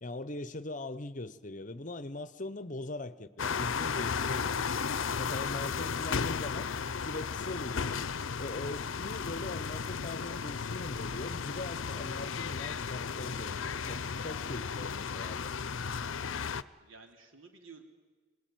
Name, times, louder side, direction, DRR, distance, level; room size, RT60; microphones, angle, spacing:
voice 1, 0.0-4.9 5.2-6.7 7.0-8.1 8.4-15.5, left 2 dB, 40° left, 0.9 m, -41 dB
sound 1, 3.4-16.6, left 6 dB, 75° left, 0.7 m, -34 dB
voice 2, 16.5-17.8, right 4 dB, 80° right, 3.4 m, -54 dB
25.5 x 19.5 x 9.2 m
head